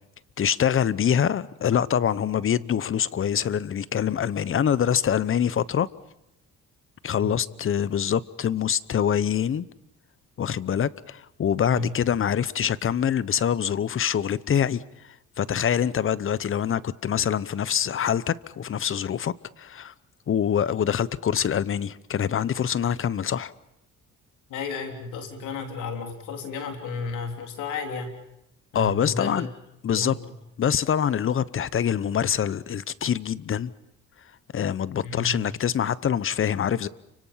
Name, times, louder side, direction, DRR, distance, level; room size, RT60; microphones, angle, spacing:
voice 1, 0.4-5.9 7.0-9.7 10.4-14.8 15.4-19.9 20.3-23.5 28.7-29.5 29.8-30.1 30.6-33.7 34.5-36.9, left 8 dB, 45° left, 0.9 m, -25 dB
voice 2, 24.5-28.1 28.7-29.5 29.9-30.2 35.0-35.4, left 4 dB, 90° left, 3.5 m, -32 dB
30.0 x 25.0 x 5.7 m
cardioid pair, 90°, 30 cm